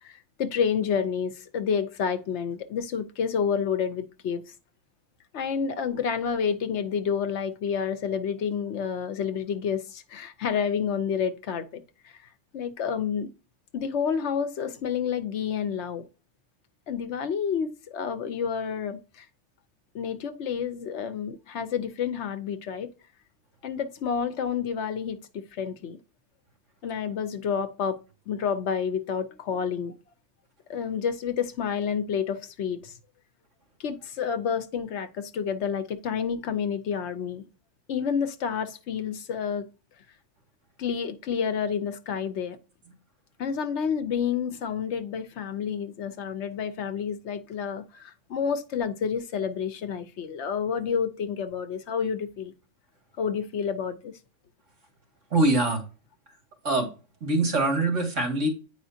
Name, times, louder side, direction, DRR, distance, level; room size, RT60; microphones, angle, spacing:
voice 1, 0.0-4.4 5.3-12.2 12.5-13.3 13.7-16.1 16.9-19.3 19.9-22.9 23.6-26.0 26.8-28.0 28.3-29.9 30.7-32.9 33.8-37.4 37.9-39.7 40.8-42.6 43.4-52.5 53.2-54.2, left 7 dB, 70° left, 1.0 m, -29 dB
voice 2, 55.3-55.8 56.6-56.9 57.2-58.5, right 2 dB, 75° right, 2.4 m, -23 dB
9.0 x 4.9 x 2.7 m
omnidirectional pair, 1.3 m